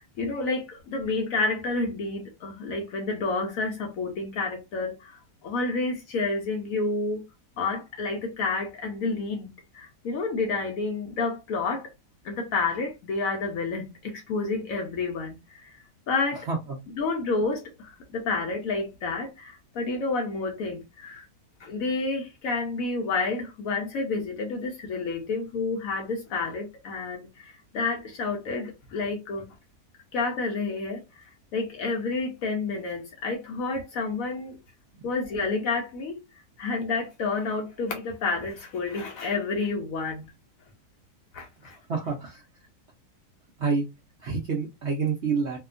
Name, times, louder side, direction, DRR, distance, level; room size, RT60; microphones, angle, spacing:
voice 1, 0.0-7.2 7.6-11.9 12.2-15.8 16.1-16.5 17.0-21.3 21.6-29.5 30.1-31.2 31.5-34.6 35.0-36.2 36.6-40.3 41.3-41.8, left 3 dB, 65° left, 0.9 m, -30 dB
voice 2, 41.9-42.4 43.6-43.8 44.2-45.6, right 5 dB, 65° right, 0.7 m, -28 dB
2.8 x 2.2 x 2.4 m
omnidirectional pair, 1.8 m